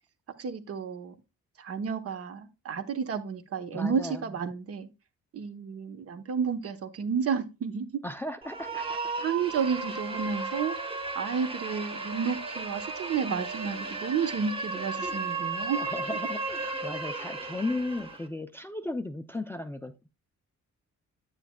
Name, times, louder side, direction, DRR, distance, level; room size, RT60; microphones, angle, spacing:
voice 1, 0.4-1.1 1.6-4.9 5.3-7.9 9.2-10.8 11.2-15.8, right 6 dB, 50° right, 1.0 m, -31 dB
voice 2, 3.7-4.2 8.0-9.0 15.8-20.1, left 2 dB, 10° left, 0.4 m, -35 dB
sound 1, 8.4-18.3, right 3 dB, 20° right, 1.2 m, -35 dB
9.1 x 8.3 x 2.3 m
wide cardioid pair, 165°, 30 cm